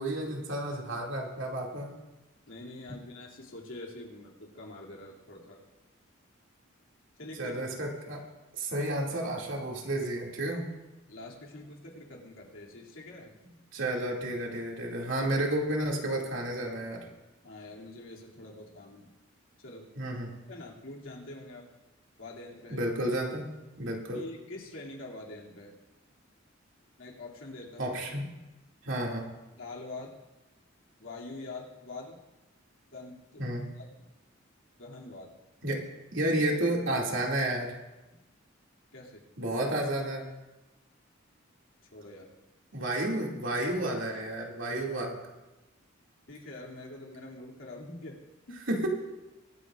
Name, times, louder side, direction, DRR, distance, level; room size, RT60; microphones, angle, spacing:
voice 1, 0.0-1.9 7.4-8.2 8.6-10.7 13.7-17.0 20.0-20.3 22.7-23.4 23.8-24.2 27.8-28.3 28.8-29.3 33.4-33.7 35.6-35.8 36.1-37.7 39.4-40.2 42.7-45.2 48.7-48.9, right 1 dB, 70° right, -1 dB, 2.4 m, -31 dB
voice 2, 2.5-5.6 7.2-7.6 8.8-8.9 11.1-13.4 17.4-19.1 19.6-19.9 20.5-21.7 22.2-22.8 24.1-25.7 27.0-28.0 29.6-30.2 31.0-32.2 32.9-34.1 34.8-35.4 38.1-38.2 38.9-39.2 41.9-42.3 46.3-48.2 48.5-48.6, left 2 dB, 90° left, -2 dB, 2.7 m, -45 dB
23.5 x 9.5 x 2.5 m, 1.0 s
head